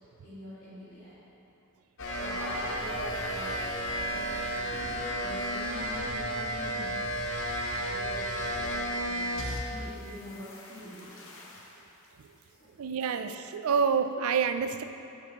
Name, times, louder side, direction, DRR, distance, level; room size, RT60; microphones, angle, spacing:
voice 1, 0.2-1.1 2.2-3.6 4.0-4.3 4.7-7.1 7.7-11.2 13.1-13.2, equal, 40° left, -13 dB, 1.9 m, -45 dB
sound 1, 2.0-9.9 10.2-11.7, equal, 65° left, 1.0 m, -33 dB
voice 2, 12.8-14.8, right 6 dB, 75° right, 9 dB, 0.4 m, -28 dB
10.0 x 6.7 x 3.0 m, 2.7 s
head